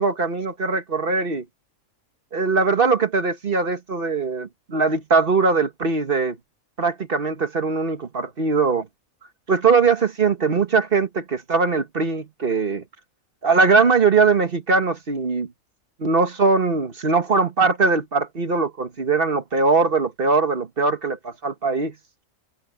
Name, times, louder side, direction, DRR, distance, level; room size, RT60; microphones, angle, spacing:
voice 1, 0.0-1.4 2.3-6.4 6.8-8.9 9.5-12.8 13.4-15.5 16.0-21.9, right 4 dB, 45° right, 1.5 m, -21 dB
omnidirectional pair, 1.4 m